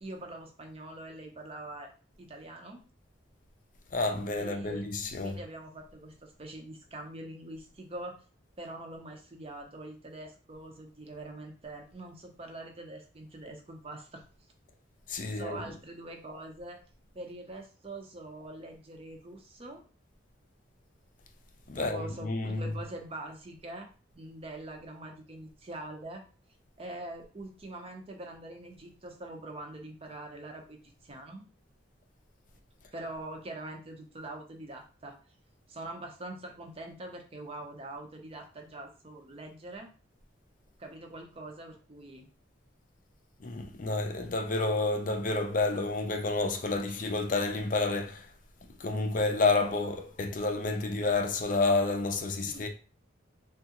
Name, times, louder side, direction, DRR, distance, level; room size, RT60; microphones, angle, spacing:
voice 1, 0.0-1.9 2.2-2.8 4.4-4.9 5.2-8.2 8.6-14.2 15.3-16.8 17.1-19.8 21.7-23.9 24.1-26.2 26.8-31.4 32.9-35.2 35.7-39.9 40.8-42.3 52.4-52.7, right 2 dB, 30° right, 0.6 m, -44 dB
voice 2, 3.9-5.4 15.1-15.7 21.7-22.8 43.4-48.3 48.8-52.7, left 3 dB, 45° left, 0.5 m, -29 dB
3.5 x 2.3 x 2.8 m
head